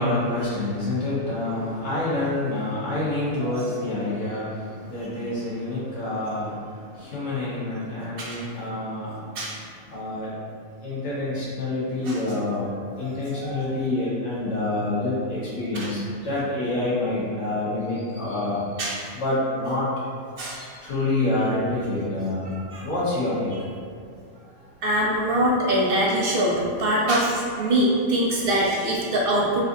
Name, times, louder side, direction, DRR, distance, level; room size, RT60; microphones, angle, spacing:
voice 1, 0.0-9.3 9.9-10.3 10.8-18.6 19.1-19.9 20.8-23.5, left 2 dB, 65° left, -9 dB, 1.5 m, -27 dB
voice 2, 13.0-13.7 15.7-15.9 18.8-19.0 20.4-20.7 22.7-22.9 24.8-29.6, right 1 dB, 60° right, -3 dB, 0.7 m, -24 dB
4.1 x 2.6 x 2.5 m, 2.2 s
omnidirectional pair, 1.3 m